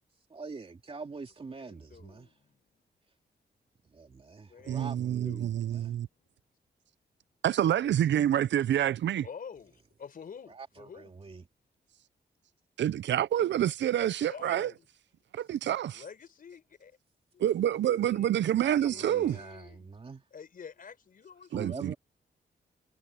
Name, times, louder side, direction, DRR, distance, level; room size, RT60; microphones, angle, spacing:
voice 1, 0.3-2.3 3.9-6.0 10.5-11.4 18.6-20.2 21.5-22.0, right 4 dB, 30° right, 2.6 m, -44 dB
voice 2, 1.5-2.8 4.5-6.3 9.2-11.1 14.1-14.8 15.9-16.9 17.3-19.9 20.3-21.8, left 6 dB, 50° left, 5.1 m, -49 dB
voice 3, 4.7-6.1 7.4-9.3 12.8-14.7 15.3-16.0 17.4-19.4 21.5-21.9, right 11 dB, 80° right, 0.5 m, -27 dB
wide cardioid pair, 175°, 18 cm